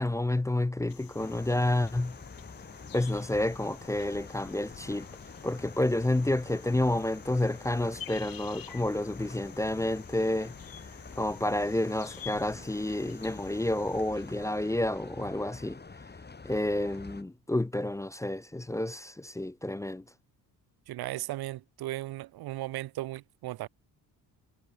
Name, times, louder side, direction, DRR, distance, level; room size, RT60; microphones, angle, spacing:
voice 1, 0.0-2.2 2.9-5.1 5.4-10.5 11.2-15.8 16.4-20.0, left 1 dB, 10° left, 0.5 m, -29 dB
sound 1, 0.9-15.1, left 10 dB, 60° left, 6.8 m, -50 dB
sound 2, 1.2-17.2, left 4 dB, 25° left, 5.0 m, -47 dB
voice 2, 20.9-23.7, right 16 dB, 70° right, 0.9 m, -36 dB
cardioid pair, 95°, 39 cm